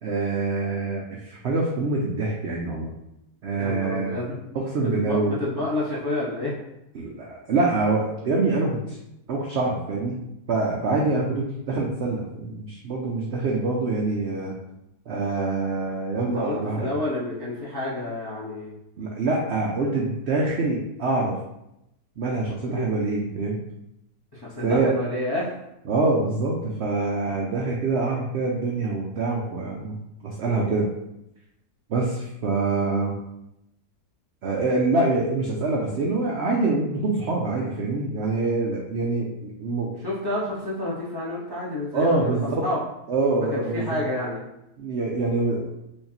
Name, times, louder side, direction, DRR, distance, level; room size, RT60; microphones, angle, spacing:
voice 1, 0.0-2.9 3.4-4.2 4.5-5.3 6.9-9.0 9.3-10.2 10.5-14.6 15.1-17.0 19.0-21.4 22.2-23.6 24.6-24.9 25.9-30.0 30.2-30.9 31.9-33.2 34.4-39.9 41.9-42.6 43.1-44.0 44.8-45.7, right 3 dB, 75° right, -2 dB, 0.6 m, -25 dB
voice 2, 3.6-4.4 4.8-6.5 16.1-18.7 22.6-22.8 24.3-25.5 40.0-42.8 43.5-44.4, left 2 dB, 25° left, -7 dB, 0.5 m, -29 dB
4.4 x 2.8 x 2.8 m, 0.85 s
omnidirectional pair, 1.8 m